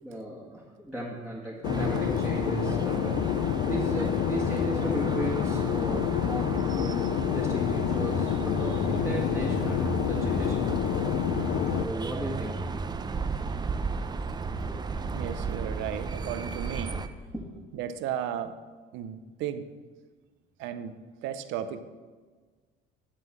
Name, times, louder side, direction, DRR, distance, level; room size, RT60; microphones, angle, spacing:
voice 1, 0.0-10.8 11.8-12.6 14.7-14.8 17.3-17.5, right 1 dB, ahead, -4 dB, 1.6 m, -36 dB
Fixed-wing aircraft airplane, 1.6-11.8, left 11 dB, 65° left, 0.5 m, -28 dB
sound 1, 1.6-17.1, right 4 dB, 20° right, 0.5 m, -34 dB
voice 2, 14.8-17.0 17.7-18.6 18.9-19.7 20.6-21.8, right 9 dB, 75° right, 11 dB, 0.7 m, -35 dB
11.0 x 3.8 x 7.3 m, 1.4 s
supercardioid pair, 95°, 20 cm